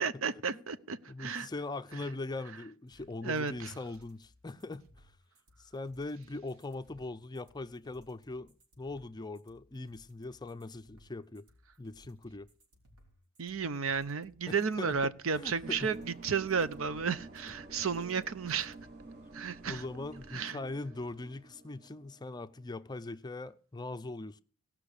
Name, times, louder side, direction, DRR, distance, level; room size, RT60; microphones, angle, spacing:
voice 1, 0.0-1.5 3.2-3.7 13.4-18.8 19.3-19.8 20.3-20.6, right 5 dB, 65° right, 0.7 m, -33 dB
voice 2, 1.1-5.1 5.6-11.4 11.8-12.5 14.5-15.1 15.4-15.9 17.9-18.2 19.7-24.4, left 2 dB, 20° left, 0.5 m, -41 dB
sound 1, 2.9-18.9, equal, 90° right, 4.0 m, -63 dB
sound 2, 15.3-20.3, equal, 50° right, 2.5 m, -59 dB
sound 3, 15.6-22.6, right 2 dB, 35° right, 0.9 m, -50 dB
17.0 x 6.1 x 6.6 m
head